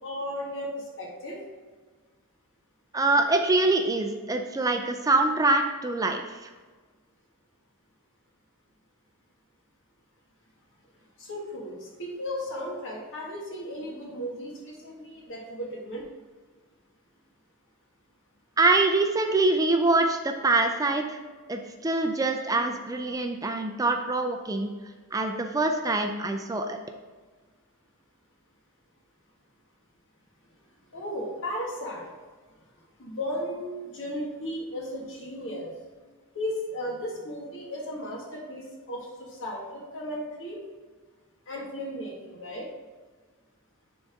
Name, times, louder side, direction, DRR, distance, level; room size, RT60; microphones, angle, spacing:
voice 1, 0.0-1.4 11.2-16.0 30.9-32.1 33.0-35.7 36.3-40.6 41.5-42.7, equal, 60° left, -2 dB, 1.9 m, -35 dB
voice 2, 2.9-6.4 18.6-21.2 21.5-24.7 25.1-26.8, right 2 dB, 15° right, 5 dB, 0.4 m, -24 dB
9.8 x 4.0 x 3.6 m, 1.4 s
head